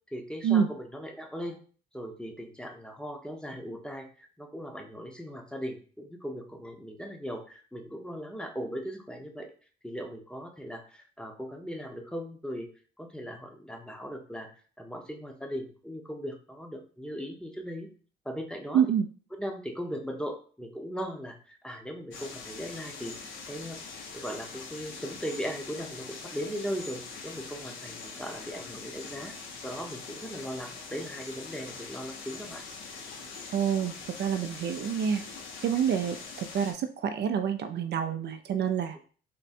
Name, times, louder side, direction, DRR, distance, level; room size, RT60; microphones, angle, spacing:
voice 1, 0.1-1.6 1.9-9.5 9.8-12.7 13.0-14.5 14.8-17.9 18.2-18.8 19.4-29.3 29.6-32.6, equal, 5° left, 3 dB, 0.8 m, -38 dB
voice 2, 18.7-19.1 33.5-35.2 35.6-39.0, right 8 dB, 60° right, 7 dB, 0.4 m, -27 dB
sound 1, 22.1-36.7, left 4 dB, 75° left, 0.9 m, -43 dB
3.6 x 2.2 x 4.2 m, 0.41 s
cardioid pair, 90°, 20 cm